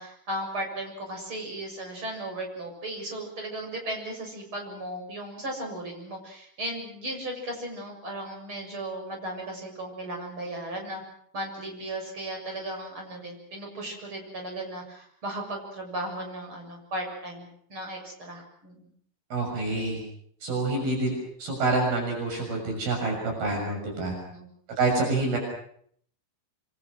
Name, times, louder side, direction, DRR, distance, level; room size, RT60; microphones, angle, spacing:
voice 1, 0.0-11.0 11.3-18.9 24.1-24.5, right 1 dB, 30° right, 2 dB, 7.8 m, -36 dB
voice 2, 19.3-20.0 20.4-21.1 21.4-24.1 24.8-25.4, right 3 dB, 65° right, 1 dB, 8.4 m, -27 dB
28.5 x 24.0 x 6.2 m, 0.65 s
omnidirectional pair, 4.6 m